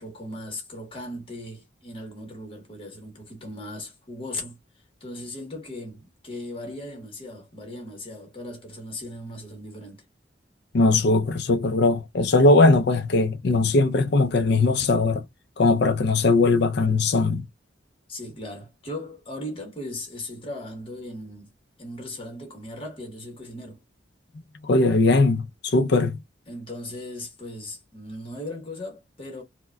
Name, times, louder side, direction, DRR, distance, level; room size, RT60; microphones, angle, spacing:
voice 1, 0.0-4.6 5.0-10.0 18.1-21.5 21.8-23.8 26.5-29.4, left 1 dB, 30° left, 1.0 m, -38 dB
voice 2, 10.7-15.3 15.6-17.4 24.6-26.2, left 3 dB, 65° left, 0.5 m, -20 dB
4.5 x 2.2 x 2.2 m
head